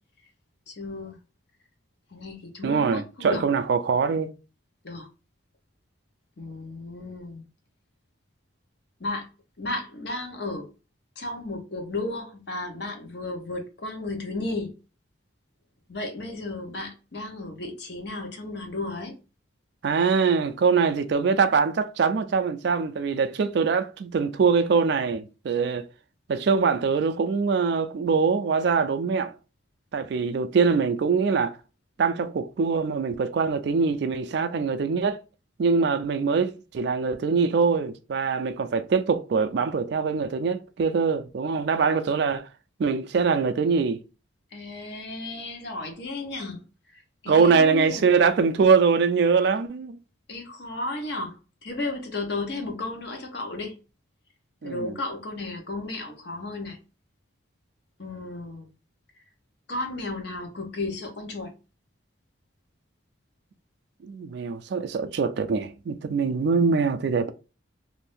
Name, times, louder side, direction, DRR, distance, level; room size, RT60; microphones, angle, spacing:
voice 1, 0.7-1.2 2.1-3.4 4.8-5.1 6.4-7.4 9.0-9.3 9.6-10.7 11.2-14.7 15.9-19.2 44.5-46.6 46.9-48.1 50.3-53.7 54.6-56.8 58.0-58.7 59.7-61.5, left 2 dB, 55° left, 0.8 m, -34 dB
voice 2, 2.6-4.3 19.8-25.9 26.3-29.3 29.9-31.6 32.0-35.2 35.6-42.5 42.8-44.0 47.3-50.0 54.6-55.0 64.0-67.3, right 5 dB, 55° right, 0.3 m, -23 dB
2.6 x 2.6 x 3.4 m
head